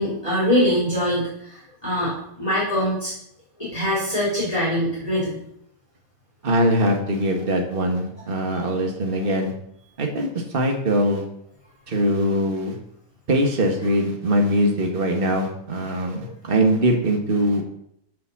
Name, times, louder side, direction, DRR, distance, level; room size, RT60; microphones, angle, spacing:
voice 1, 0.0-3.1 3.6-5.4 16.2-16.3, equal, 20° left, -8 dB, 3.5 m, -23 dB
voice 2, 6.4-9.5 10.0-10.3 10.5-11.2 11.9-12.8 13.3-17.6, right 1 dB, 40° right, 2 dB, 1.6 m, -22 dB
7.4 x 6.2 x 7.1 m, 0.75 s
omnidirectional pair, 1.6 m